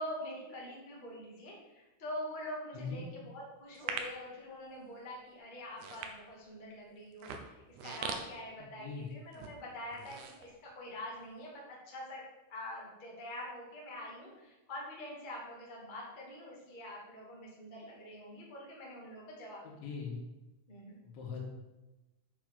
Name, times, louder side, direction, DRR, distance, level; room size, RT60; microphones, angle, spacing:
voice 1, 0.0-12.2 12.5-19.6 20.7-21.0, left 1 dB, 50° left, -4 dB, 0.5 m, -45 dB
voice 2, 2.7-3.0 8.8-9.1 19.6-20.2 21.0-21.4, left 5 dB, 75° left, -1 dB, 4.2 m, -41 dB
sound 1, 3.7-4.2 4.9-5.1 5.6-6.6 7.1-9.0 9.3-9.5 9.9-11.1 11.5-11.6, right 6 dB, 75° right, 2.3 m, -41 dB
8.8 x 5.5 x 6.6 m, 1.1 s
omnidirectional pair, 5.5 m